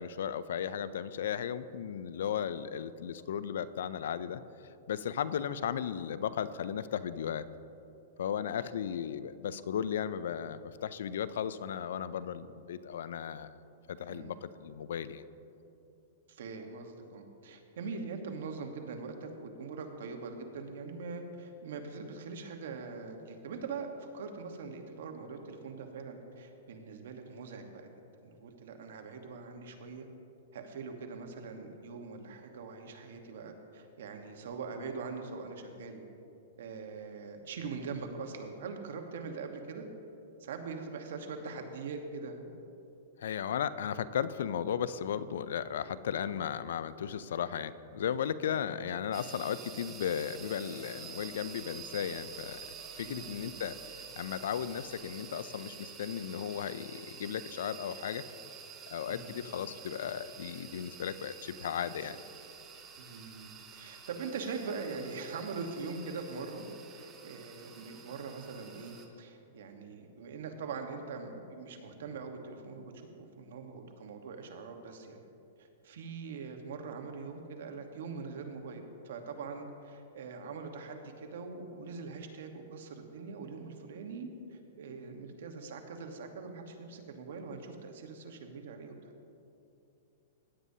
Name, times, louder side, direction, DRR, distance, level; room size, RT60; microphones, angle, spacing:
voice 1, 0.0-4.4 4.9-7.4 8.2-13.5 13.9-15.2 43.2-52.6 52.9-58.2 58.9-62.2, left 8 dB, 75° left, 15 dB, 0.4 m, -35 dB
voice 2, 16.3-27.9 28.2-30.1 30.5-36.0 36.6-39.8 40.4-42.5 48.5-48.6 53.0-53.6 59.1-59.3 62.0-62.2 63.0-75.2 75.6-89.1, right 4 dB, 70° right, 4 dB, 1.2 m, -42 dB
sound 1, 49.1-69.1, right 6 dB, 25° right, 1.1 m, -49 dB
16.5 x 9.6 x 2.8 m, 2.7 s
hypercardioid pair, 145°, 0 cm